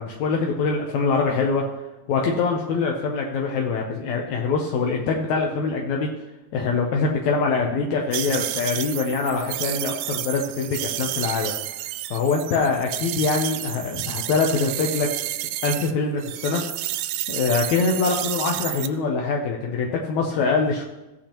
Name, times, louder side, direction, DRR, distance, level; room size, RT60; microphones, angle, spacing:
voice 1, 0.0-1.6 2.1-6.1 6.5-11.6 12.1-15.1 15.4-16.6 17.3-20.8, left 4 dB, 75° left, 0 dB, 2.0 m, -24 dB
sound 1, 8.1-15.9 16.2-18.9, right 14 dB, 85° right, 1.9 m, -30 dB
15.5 x 8.6 x 2.9 m, 1.1 s
omnidirectional pair, 3.5 m